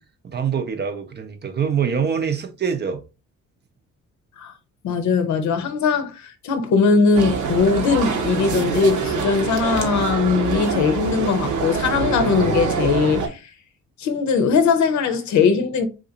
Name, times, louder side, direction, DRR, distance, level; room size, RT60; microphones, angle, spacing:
voice 1, 0.2-3.0, right 7 dB, 35° right, 0.6 m, -24 dB
voice 2, 4.8-13.4 14.0-15.9, left 5 dB, 70° left, 0.7 m, -20 dB
sound 1, 7.1-13.3, right 5 dB, 70° right, 0.8 m, -25 dB
3.8 x 2.5 x 2.7 m
cardioid pair, 90°, 30 cm